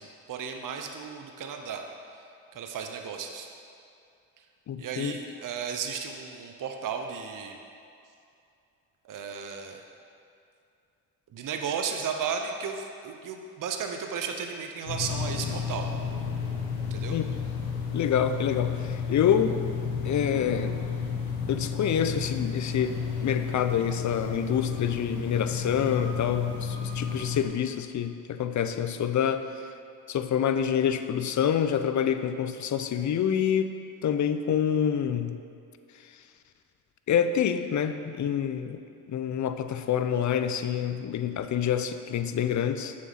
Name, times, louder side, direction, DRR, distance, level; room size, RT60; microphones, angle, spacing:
voice 1, 0.0-1.8 2.5-3.5 4.8-7.6 9.0-9.8 11.3-15.9 16.9-17.2, right 6 dB, 45° right, 4 dB, 0.9 m, -34 dB
voice 2, 4.7-5.2 17.1-17.3 17.9-19.6 20.0-20.8 21.5-29.7 30.1-35.4 36.0-36.1 37.1-38.8 39.1-42.9, left 8 dB, 40° left, 9 dB, 0.7 m, -27 dB
sound 1, 14.9-27.4, left 6 dB, 75° left, 1.3 m, -32 dB
7.2 x 6.4 x 5.9 m, 2.5 s
hypercardioid pair, 50°, 45 cm